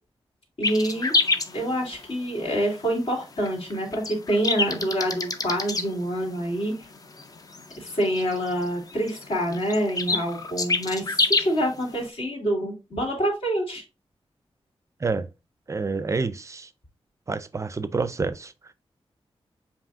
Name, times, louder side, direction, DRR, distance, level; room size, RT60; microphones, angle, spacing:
voice 1, 0.6-1.1 1.5-6.7 7.8-13.8, equal, 65° left, 2.4 m, -26 dB
sound 1, 0.6-12.1, left 3 dB, 35° left, 0.5 m, -28 dB
voice 2, 15.7-16.7 17.3-18.7, right 4 dB, 30° right, 0.4 m, -28 dB
7.4 x 2.7 x 2.5 m
wide cardioid pair, 105°, 10 cm